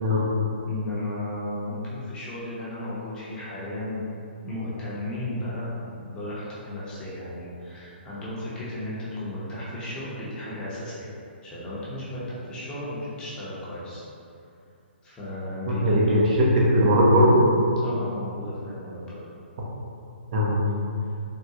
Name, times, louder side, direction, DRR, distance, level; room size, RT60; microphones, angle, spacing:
voice 1, 0.7-4.0 4.4-11.1 11.4-14.0 15.0-16.3 17.8-19.2, left 1 dB, 15° left, -9 dB, 0.7 m, -34 dB
voice 2, 15.8-17.4 20.3-20.6, equal, 45° right, -4 dB, 0.5 m, -19 dB
3.6 x 2.2 x 2.7 m, 2.5 s
hypercardioid pair, 150°, 6 cm